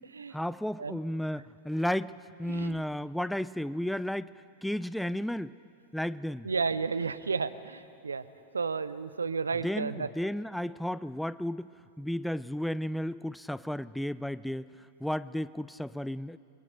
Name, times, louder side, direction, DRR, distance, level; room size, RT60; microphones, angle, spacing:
voice 1, 0.3-4.3 4.6-5.5 5.9-6.5 9.6-11.7 12.0-14.7 15.0-16.4, equal, ahead, 17 dB, 0.4 m, -33 dB
voice 2, 6.4-8.2 8.5-10.1, right 5 dB, 75° right, 14 dB, 0.8 m, -32 dB
28.0 x 22.5 x 5.2 m, 2.7 s
figure-of-eight pair, 90°, 0 cm